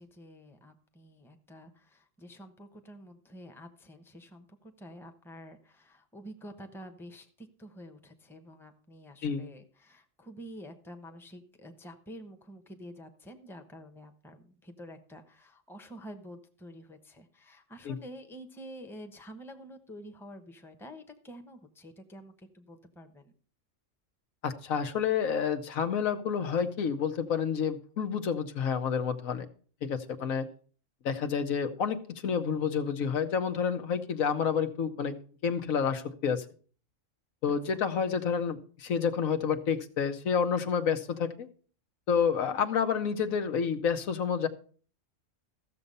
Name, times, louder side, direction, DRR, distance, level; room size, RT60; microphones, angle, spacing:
voice 1, 0.0-23.3 37.7-37.8, equal, ahead, 6 dB, 0.8 m, -48 dB
voice 2, 24.4-29.5 29.8-30.5 31.0-35.2 35.4-36.4 37.4-41.5 42.1-44.5, left 6 dB, 85° left, 8 dB, 1.4 m, -29 dB
14.5 x 6.9 x 5.3 m, 0.42 s
omnidirectional pair, 1.4 m